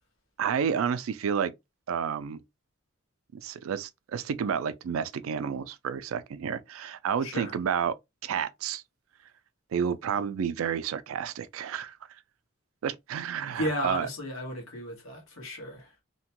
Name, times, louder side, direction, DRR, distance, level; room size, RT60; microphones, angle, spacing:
voice 1, 0.4-1.5 1.9-2.4 3.3-8.0 8.2-8.8 9.7-12.0 12.8-14.1, right 7 dB, 90° right, 0.4 m, -30 dB
voice 2, 7.2-7.5 13.5-15.9, left 1 dB, 90° left, 1.3 m, -34 dB
2.8 x 2.2 x 2.8 m
head